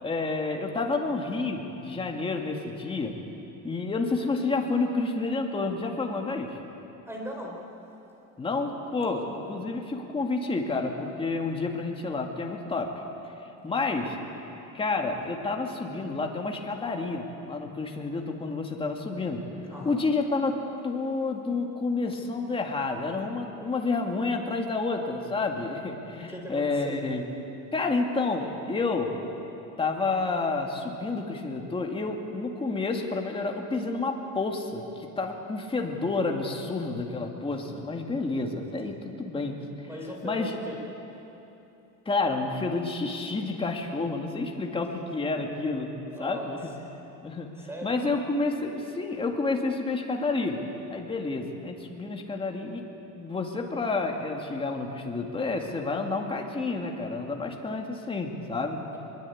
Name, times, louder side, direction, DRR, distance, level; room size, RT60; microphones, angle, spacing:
voice 1, 0.0-3.2 3.6-6.6 8.4-12.9 13.6-14.2 14.7-19.4 19.8-27.3 27.7-29.2 29.8-39.6 40.2-40.5 42.1-46.7 47.0-50.6 50.9-52.8 53.2-58.8, left 3 dB, 15° left, 2 dB, 2.3 m, -30 dB
voice 2, 7.1-7.5 8.9-9.3 19.7-20.1 26.1-27.0 39.8-40.8 46.1-46.8 47.6-48.2, equal, 5° right, 0 dB, 4.3 m, -39 dB
22.0 x 22.0 x 8.7 m, 2.9 s
cardioid pair, 155°, 35 cm